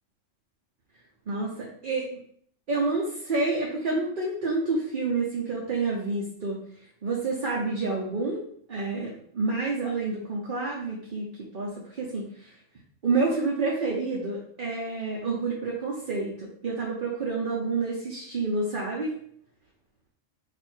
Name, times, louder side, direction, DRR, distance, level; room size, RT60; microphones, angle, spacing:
voice 1, 1.3-2.1 2.7-6.6 7.0-8.4 8.7-12.5 13.0-19.1, right 3 dB, 45° right, -4 dB, 0.9 m, -29 dB
4.5 x 2.6 x 4.5 m, 0.62 s
omnidirectional pair, 1.3 m